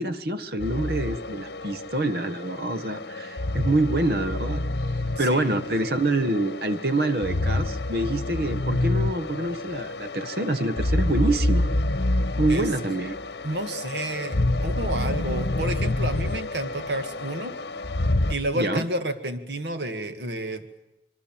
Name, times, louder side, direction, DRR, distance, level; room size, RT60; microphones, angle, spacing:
voice 1, 0.0-4.6 5.2-11.6 12.4-13.1 18.5-18.9, right 2 dB, 60° right, 11 dB, 1.3 m, -26 dB
sound 1, 0.6-18.4, left 2 dB, 70° left, 1.2 m, -28 dB
voice 2, 5.2-5.6 12.5-12.7 13.4-17.5 18.3-20.7, right 1 dB, 75° right, 8 dB, 2.0 m, -30 dB
26.0 x 24.5 x 7.5 m, 0.94 s
head